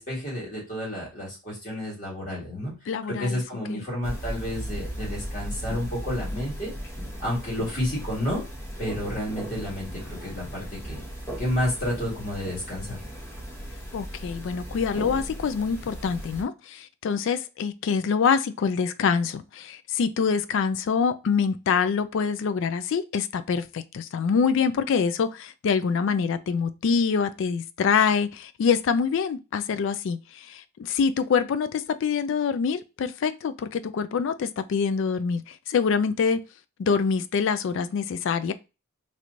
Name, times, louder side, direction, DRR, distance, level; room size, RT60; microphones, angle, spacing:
voice 1, 0.0-2.7 3.2-6.7 7.2-8.4 8.8-11.0 11.4-13.0, left 1 dB, 35° left, 2.0 m, -30 dB
voice 2, 2.9-3.4 3.7-3.8 13.9-36.4 36.8-38.5, left 6 dB, 60° left, 0.3 m, -25 dB
sound 1, 4.0-16.4, equal, 10° left, 0.9 m, -37 dB
3.1 x 3.0 x 2.5 m
head